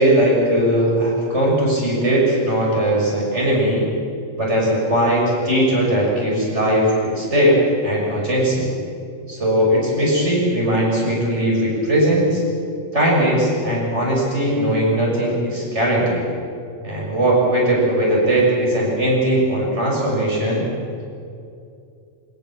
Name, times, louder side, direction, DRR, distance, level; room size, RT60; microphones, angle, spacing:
voice 1, 0.0-3.9 4.4-7.6 7.8-8.7 9.3-12.4 12.9-16.2 16.8-20.6, right 1 dB, 60° right, -4 dB, 7.0 m, -19 dB
23.5 x 22.5 x 7.6 m, 2.5 s
omnidirectional pair, 1.3 m